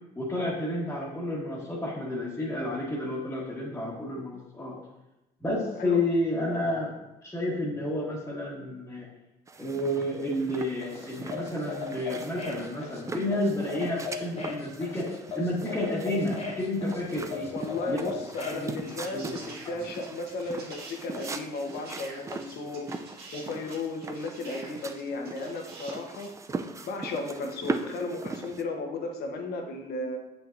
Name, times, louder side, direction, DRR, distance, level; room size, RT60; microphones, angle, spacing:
voice 1, 0.1-4.8 5.4-6.9 7.2-9.1 9.6-17.5 17.9-18.0 18.5-19.4, left 1 dB, 10° left, -7 dB, 1.4 m, -31 dB
sound 1, 9.5-28.6, right 4 dB, 20° right, 0.4 m, -40 dB
sound 2, 10.8-18.7, left 6 dB, 40° left, 1.2 m, -37 dB
voice 2, 17.5-22.9 23.3-26.3 26.8-30.2, left 2 dB, 70° left, 3 dB, 1.1 m, -34 dB
sound 3, 18.9-26.4 27.6-27.7, right 3 dB, 75° right, 1.6 m, -48 dB
7.6 x 5.6 x 2.6 m, 0.95 s
cardioid pair, 110°, 17 cm